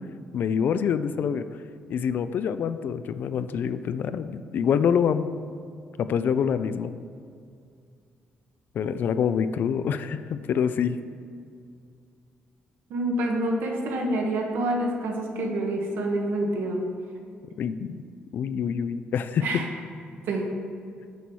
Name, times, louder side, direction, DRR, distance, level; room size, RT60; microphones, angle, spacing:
voice 1, 0.3-1.5 1.9-5.3 6.0-6.9 8.7-11.0 17.6-18.0 18.3-19.5, left 7 dB, 60° left, 12 dB, 0.4 m, -26 dB
voice 2, 12.9-16.8 19.4-19.7 20.3-20.5, right 1 dB, 80° right, 1 dB, 1.2 m, -27 dB
6.9 x 4.6 x 6.2 m, 2.3 s
cardioid pair, 115°, 4 cm